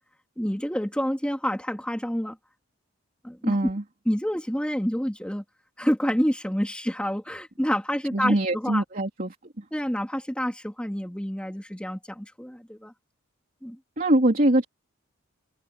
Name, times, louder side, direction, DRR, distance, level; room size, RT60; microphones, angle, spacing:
voice 1, 0.4-2.4 3.2-3.7 4.1-5.4 5.8-8.8 9.7-12.9 13.6-13.8, equal, 5° left, 2.6 m, -28 dB
voice 2, 3.4-3.8 8.1-9.3 14.0-14.6, right 1 dB, 40° right, 3.1 m, -22 dB
head